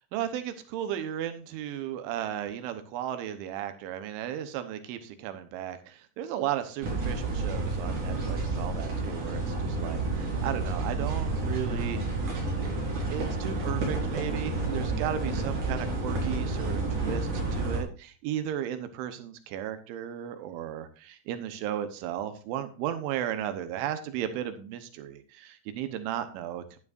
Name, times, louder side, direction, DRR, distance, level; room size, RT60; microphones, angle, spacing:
voice 1, 0.1-12.0 13.1-26.6, right 10 dB, 90° right, 9 dB, 3.4 m, -35 dB
sound 1, 6.8-17.8, right 3 dB, 45° right, 5.2 m, -30 dB
12.5 x 11.0 x 2.6 m, 0.38 s
omnidirectional pair, 5.4 m